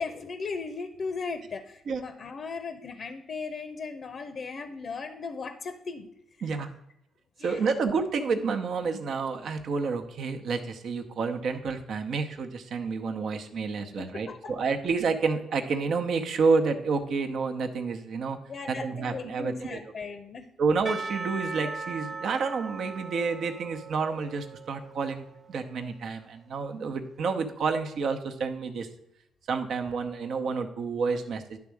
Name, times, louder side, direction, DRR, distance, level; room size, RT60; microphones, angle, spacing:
voice 1, 0.0-6.1 6.4-6.6 7.4-7.7 14.0-14.5 18.5-20.5, left 4 dB, 55° left, 9 dB, 0.7 m, -37 dB
voice 2, 7.4-18.4 18.7-19.8 20.6-28.9 29.5-31.6, right 4 dB, 65° right, 6 dB, 0.8 m, -29 dB
Percussion / Church bell, 20.9-25.9, right 4 dB, 30° right, 0.8 m, -39 dB
10.5 x 3.6 x 6.3 m, 0.80 s
supercardioid pair, 55°, 0 cm